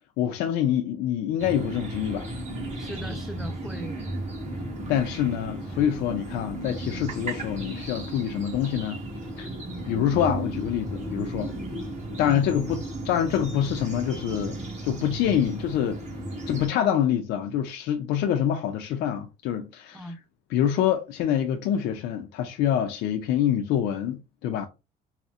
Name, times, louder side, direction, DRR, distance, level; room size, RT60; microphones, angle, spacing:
voice 1, 0.2-2.3 4.9-9.1 9.4-9.5 9.8-11.5 12.2-14.6 14.8-16.0 16.5-20.1 20.5-24.7, left 10 dB, 85° left, 0.5 m, -26 dB
sound 1, 1.4-16.7, right 1 dB, 45° right, 1.2 m, -35 dB
voice 2, 2.7-4.1 12.2-12.4 19.9-20.2, equal, ahead, 0.5 m, -38 dB
4.2 x 2.0 x 2.4 m
cardioid pair, 110°, 17 cm